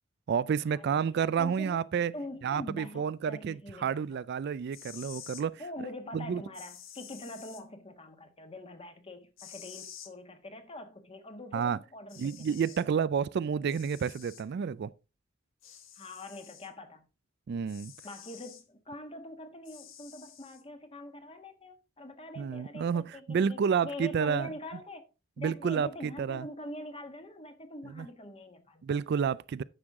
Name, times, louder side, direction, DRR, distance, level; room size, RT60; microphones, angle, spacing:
voice 1, 0.3-2.1 2.4-5.6 6.1-6.4 11.5-11.8 12.2-14.9 17.5-17.9 22.4-24.5 25.4-26.5 27.9-28.1 28.8-29.6, right 7 dB, 55° right, 0.3 m, -30 dB
voice 2, 1.3-1.8 2.1-4.0 5.6-12.5 15.9-17.1 18.0-25.0 25.4-29.0, left 1 dB, 30° left, 1.4 m, -44 dB
sound 1, 4.6-5.5 6.5-7.6 9.4-10.1 11.6-11.7 12.1-12.9 13.7-14.5 15.6-16.7 17.7-18.6 19.7-20.6, left 9 dB, 70° left, 1.2 m, -49 dB
9.7 x 6.3 x 3.6 m
head